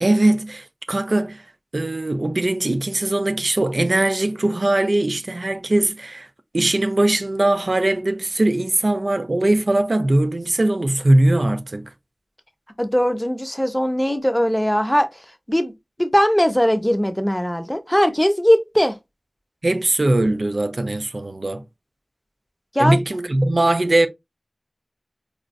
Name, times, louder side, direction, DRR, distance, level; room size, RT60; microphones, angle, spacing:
voice 1, 0.0-1.5 1.7-6.3 6.5-11.9 19.6-21.6 22.8-24.1, right 1 dB, 70° right, 0.5 m, -20 dB
voice 2, 12.8-15.2 15.5-15.7 16.0-19.0 22.7-23.0, equal, 10° left, 0.8 m, -19 dB
5.0 x 2.5 x 2.3 m
wide cardioid pair, 40°, 0 cm